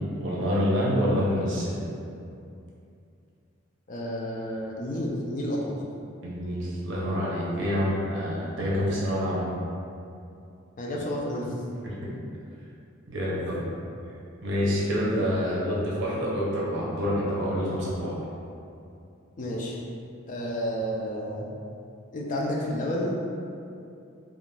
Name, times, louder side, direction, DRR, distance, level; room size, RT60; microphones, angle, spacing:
voice 1, 0.1-1.9 6.2-9.5 11.8-11.9 13.1-13.7 14.4-18.1, equal, 60° right, -6 dB, 0.6 m, -27 dB
voice 2, 3.9-5.8 10.8-11.6 13.5-13.7 19.4-19.8 20.3-21.5 22.1-23.3, equal, 40° left, -3 dB, 0.3 m, -31 dB
2.4 x 2.4 x 3.2 m, 2.6 s
head